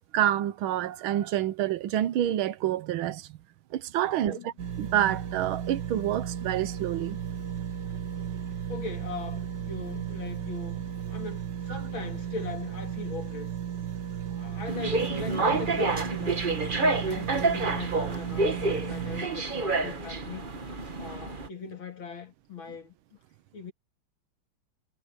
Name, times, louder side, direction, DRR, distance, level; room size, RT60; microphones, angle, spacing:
voice 1, 0.0-3.3 3.7-4.4 4.8-7.2, right 12 dB, 80° right, 1.6 m, -28 dB
voice 2, 4.0-4.5 8.7-13.5 14.2-20.5 21.0-23.2 23.5-23.7, left 4 dB, 75° left, 3.2 m, -40 dB
sound 1, 4.6-19.2, right 9 dB, 60° right, 1.9 m, -35 dB
sound 2, 14.7-21.5, right 3 dB, 30° right, 1.3 m, -28 dB
omnidirectional pair, 2.2 m